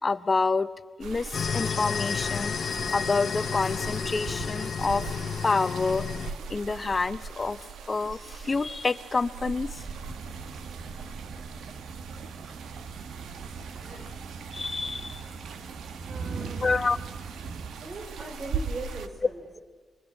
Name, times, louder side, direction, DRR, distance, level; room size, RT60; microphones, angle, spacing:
voice 1, 0.0-0.7 1.0-2.6 2.9-5.1 5.4-6.1 6.5-7.6 7.9-9.8 13.9-14.0 14.5-15.2 16.6-17.0, left 4 dB, 30° left, 14 dB, 1.0 m, -28 dB
sound 1, 1.0-19.1, right 5 dB, 90° right, 1.8 m, -40 dB
sound 2, 1.3-6.3, left 6 dB, 60° left, 1.0 m, -31 dB
sound 3, 9.7-18.8, right 5 dB, 65° right, 1.4 m, -40 dB
voice 2, 16.1-16.6 17.4-19.6, right 2 dB, 45° right, 3 dB, 3.5 m, -40 dB
26.5 x 23.0 x 9.1 m, 1.4 s
cardioid pair, 95°, 0 cm